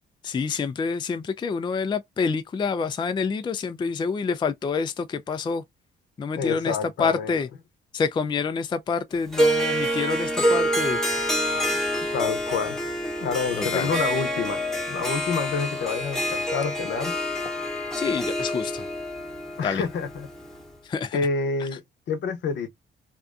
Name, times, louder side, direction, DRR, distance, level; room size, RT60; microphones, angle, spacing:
voice 1, 0.2-5.6 6.2-7.5 7.9-11.0 13.6-13.9 18.0-18.9 19.6-19.8 20.8-21.2, left 5 dB, 25° left, 0.3 m, -27 dB
voice 2, 6.3-7.3 12.1-12.8 13.2-14.6 14.9-17.1 19.6-20.3 21.1-21.8 22.1-22.7, left 5 dB, 65° left, 0.8 m, -28 dB
Harp, 9.3-20.6, equal, ahead, 0.9 m, -27 dB
2.6 x 2.2 x 2.4 m
cardioid pair, 90°, 20 cm